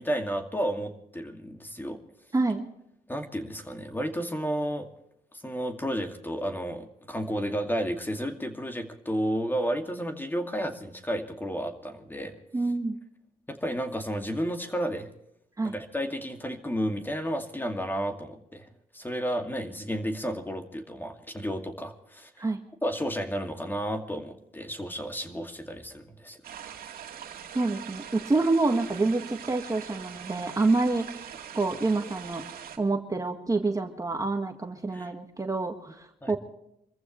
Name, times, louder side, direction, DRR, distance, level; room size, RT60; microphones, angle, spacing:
voice 1, 0.0-2.0 3.1-4.9 5.4-12.4 13.5-15.1 15.6-18.7 18.9-22.3 22.8-26.4 34.9-35.1 36.2-36.4, equal, 15° left, 5 dB, 2.3 m, -32 dB
voice 2, 2.3-2.7 12.5-13.0 15.6-15.7 22.4-22.6 27.5-31.2 31.5-32.4 32.8-36.4, right 3 dB, 20° right, 4 dB, 1.7 m, -27 dB
sound 1, 26.4-32.8, right 9 dB, 75° right, 2.1 m, -42 dB
26.0 x 14.5 x 3.2 m, 0.78 s
cardioid pair, 85°, 15 cm